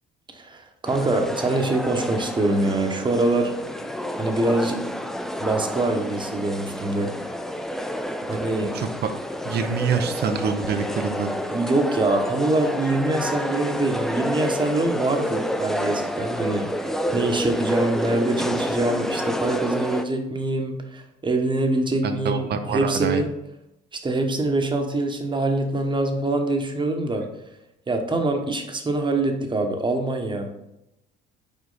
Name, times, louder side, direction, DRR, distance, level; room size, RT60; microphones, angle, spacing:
voice 1, 0.3-3.5 4.2-4.9 5.4-7.1 8.3-8.7 11.5-23.3 23.9-27.3 27.9-30.5, right 2 dB, 25° right, 4 dB, 1.1 m, -24 dB
sound 1, 0.9-20.1, equal, ahead, 0.4 m, -29 dB
voice 2, 8.7-9.1 9.4-11.4 22.0-23.2, right 6 dB, 60° right, 7 dB, 0.7 m, -26 dB
5.3 x 4.5 x 4.0 m, 0.88 s
cardioid pair, 90°, 19 cm